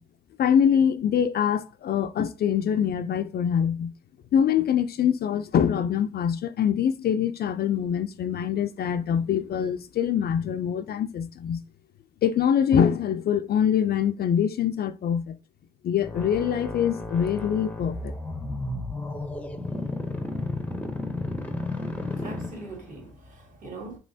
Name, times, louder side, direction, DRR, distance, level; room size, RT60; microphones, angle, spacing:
voice 1, 0.4-3.9 4.3-11.6 12.2-15.4 15.8-18.1, left 8 dB, 50° left, 0.4 m, -24 dB
sound 1, 16.0-23.0, left 2 dB, 5° left, 0.6 m, -33 dB
voice 2, 22.1-24.0, right 2 dB, 40° right, 1.5 m, -41 dB
5.3 x 3.0 x 2.7 m
cardioid pair, 90°, 20 cm